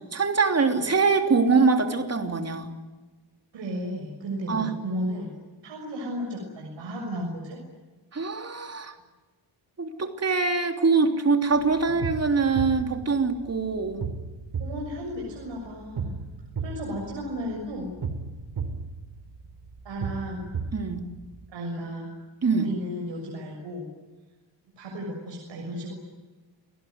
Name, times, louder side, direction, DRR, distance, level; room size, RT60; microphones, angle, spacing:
voice 1, 0.1-2.7 4.5-4.7 8.1-8.9 9.8-14.0 20.7-21.1 22.4-22.7, right 4 dB, 35° right, 5 dB, 3.4 m, -23 dB
voice 2, 3.5-5.3 5.6-7.6 14.6-16.1 16.6-17.9 19.8-20.5 21.5-22.1 22.5-23.9 24.7-25.9, equal, 75° right, 0 dB, 6.8 m, -34 dB
sound 1, 11.5-21.5, right 4 dB, 60° right, 4.2 m, -35 dB
29.5 x 19.5 x 9.6 m, 1.3 s
cardioid pair, 125°, 45 cm